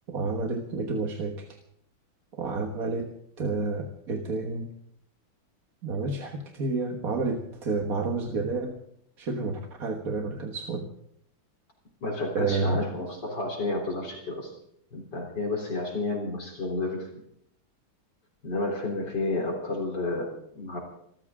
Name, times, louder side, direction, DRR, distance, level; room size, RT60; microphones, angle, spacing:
voice 1, 0.1-1.5 2.3-3.1 3.4-4.7 5.8-8.8 9.2-10.9 12.3-12.8, right 3 dB, 45° right, 3 dB, 1.7 m, -30 dB
voice 2, 12.0-14.5 14.9-17.2 18.4-20.8, left 2 dB, 55° left, -1 dB, 4.1 m, -31 dB
27.0 x 14.0 x 3.7 m, 0.71 s
omnidirectional pair, 2.3 m